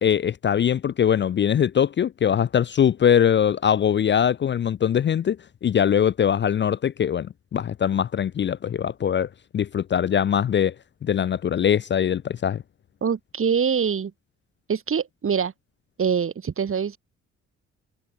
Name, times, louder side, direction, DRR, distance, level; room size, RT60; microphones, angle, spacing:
voice 1, 0.0-5.4 5.6-10.7 11.0-12.6, left 9 dB, 40° left, 0.5 m, -22 dB
voice 2, 13.0-14.1 14.7-15.5 16.0-17.0, right 7 dB, 45° right, 4.4 m, -24 dB
cardioid pair, 90°, 30 cm